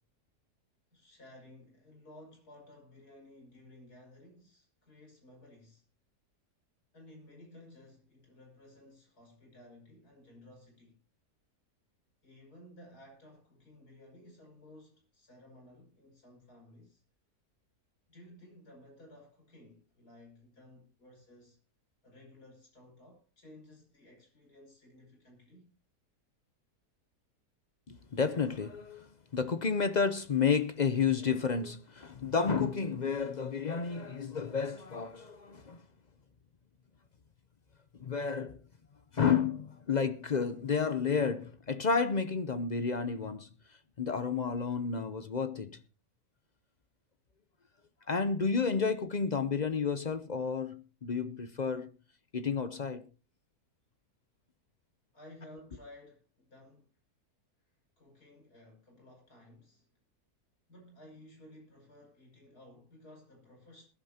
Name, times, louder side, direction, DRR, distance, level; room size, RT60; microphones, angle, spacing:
voice 1, 0.9-5.8 6.9-11.0 12.2-17.0 18.1-21.6 22.0-25.7 55.1-57.0 57.6-59.9 60.7-63.9, left 1 dB, 75° left, 6.4 m, -56 dB
voice 2, 27.9-35.8 38.0-38.6 39.1-43.5 44.0-45.8 48.1-51.9 52.3-53.0, left 5 dB, 50° left, 0.5 m, -31 dB
21.0 x 11.0 x 2.8 m
omnidirectional pair, 1.7 m